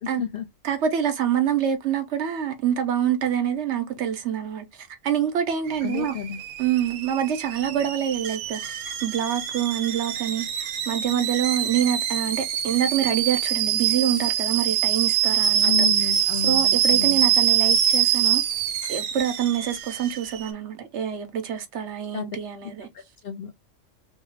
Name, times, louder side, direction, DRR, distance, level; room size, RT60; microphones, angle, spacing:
voice 1, 0.0-0.5 5.8-6.4 15.6-17.4 22.1-22.4 22.6-23.5, left 9 dB, 60° left, 0.6 m, -32 dB
voice 2, 0.6-6.1 6.6-8.6 8.9-15.9 16.4-18.4 18.9-22.9, right 9 dB, 65° right, 1.0 m, -26 dB
Alarm / Boiling, 5.7-20.5, right 9 dB, 85° right, 1.0 m, -24 dB
3.1 x 2.4 x 3.2 m
omnidirectional pair, 1.3 m